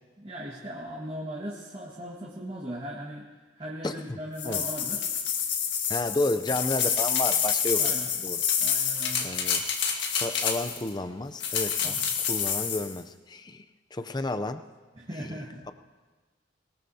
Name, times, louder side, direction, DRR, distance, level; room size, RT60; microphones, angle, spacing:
voice 1, 0.2-3.2 3.6-5.1 7.8-8.1 8.6-9.3 11.8-12.1 14.9-15.6, equal, 30° right, -4 dB, 1.7 m, -38 dB
sound 1, 4.4-10.9 11.4-12.9, left 7 dB, 65° left, 1.7 m, -28 dB
voice 2, 5.9-7.8 8.2-8.4 9.2-9.6 10.1-13.6 13.9-14.6 15.2-15.4, left 2 dB, 25° left, 9 dB, 0.5 m, -31 dB
21.5 x 19.5 x 2.8 m, 1.3 s
head